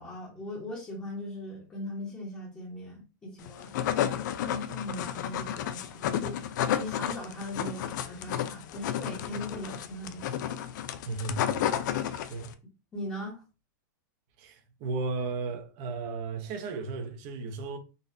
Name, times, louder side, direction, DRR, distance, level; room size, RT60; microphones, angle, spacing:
voice 1, 0.0-3.7 4.4-6.4 6.8-10.4 12.9-13.4, left 1 dB, 15° left, 1.1 m, -39 dB
sound 1, 3.5-12.5, left 10 dB, 65° left, 0.4 m, -32 dB
voice 2, 11.0-11.7 12.1-12.5 14.4-17.8, right 3 dB, 40° right, 0.8 m, -35 dB
3.9 x 2.5 x 2.6 m
supercardioid pair, 150°, 11 cm